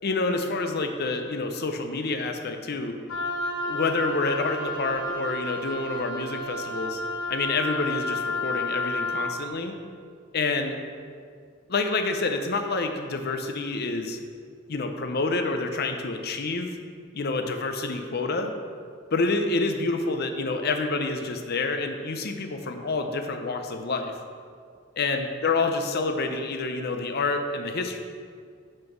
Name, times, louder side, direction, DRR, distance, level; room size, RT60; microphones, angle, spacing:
voice 1, 0.0-3.0 3.6-7.0 7.3-9.8 10.3-10.8 11.7-14.2 14.7-16.8 17.1-18.5 19.1-24.2 25.0-28.0, left 3 dB, 50° left, 6 dB, 0.6 m, -28 dB
Wind instrument woodwind instrument, 3.1-9.4, left 2 dB, 75° left, 1.1 m, -31 dB
6.3 x 4.5 x 6.0 m, 2.2 s
head